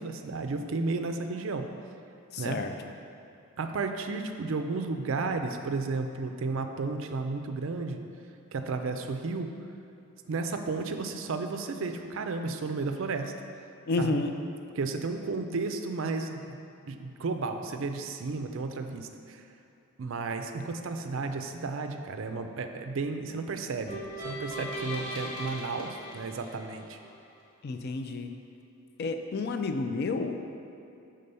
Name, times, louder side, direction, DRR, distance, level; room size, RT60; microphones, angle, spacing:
voice 1, 0.0-1.7 2.4-2.6 3.6-8.0 8.5-9.5 10.3-13.3 14.0-14.2 14.7-16.6 16.9-19.4 20.0-24.0 24.2-27.0, right 3 dB, 60° right, 6 dB, 0.4 m, -33 dB
voice 2, 2.3-2.7 13.9-14.3 27.6-28.3 29.0-30.4, left 3 dB, 45° left, 6 dB, 0.4 m, -30 dB
sound 1, 23.9-27.1, equal, 20° left, 1.3 m, -38 dB
6.8 x 3.7 x 5.4 m, 2.7 s
head